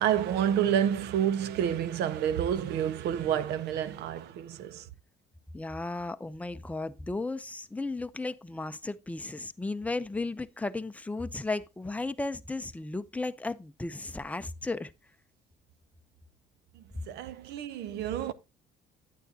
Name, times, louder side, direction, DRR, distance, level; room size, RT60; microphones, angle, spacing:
voice 1, 0.0-4.8 17.1-18.3, right 9 dB, 80° right, 0.7 m, -29 dB
voice 2, 5.5-14.9, left 3 dB, 10° left, 0.5 m, -35 dB
9.2 x 9.1 x 2.7 m
cardioid pair, 110°, 17 cm